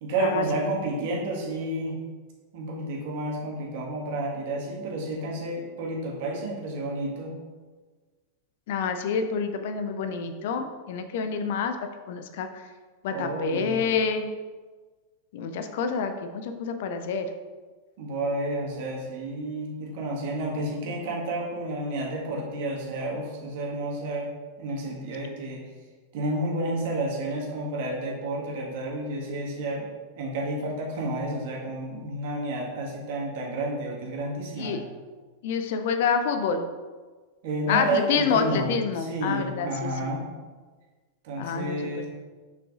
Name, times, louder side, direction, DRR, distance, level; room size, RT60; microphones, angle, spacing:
voice 1, 0.0-2.0 2.5-7.3 13.1-13.8 18.0-24.3 24.6-25.6 26.1-29.9 30.2-34.8 37.4-38.7 39.0-40.3 41.2-42.1, right 1 dB, 50° right, -2 dB, 1.7 m, -30 dB
voice 2, 8.7-11.8 12.1-12.6 13.0-14.3 15.3-17.3 34.6-34.8 35.4-36.6 37.7-40.1 41.4-42.1, left 6 dB, 55° left, 8 dB, 0.5 m, -28 dB
7.0 x 5.7 x 2.5 m, 1.4 s
figure-of-eight pair, 90°, 0 cm